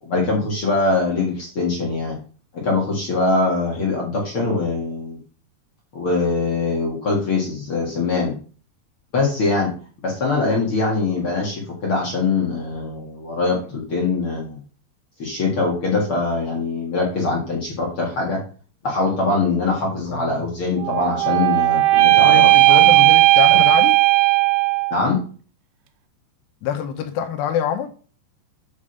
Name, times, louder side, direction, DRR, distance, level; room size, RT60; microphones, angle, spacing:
voice 1, 0.0-2.2 2.5-5.2 5.9-8.4 9.1-9.7 10.0-14.6 15.2-18.4 18.8-22.9 23.5-23.6 24.9-25.2, left 3 dB, 45° left, -2 dB, 1.7 m, -22 dB
voice 2, 20.1-20.5 22.2-23.9 26.6-27.9, left 9 dB, 75° left, 5 dB, 2.9 m, -25 dB
sound 1, 20.8-25.1, right 17 dB, 90° right, 3.0 m, -15 dB
8.4 x 5.0 x 5.5 m, 0.39 s
omnidirectional pair, 5.1 m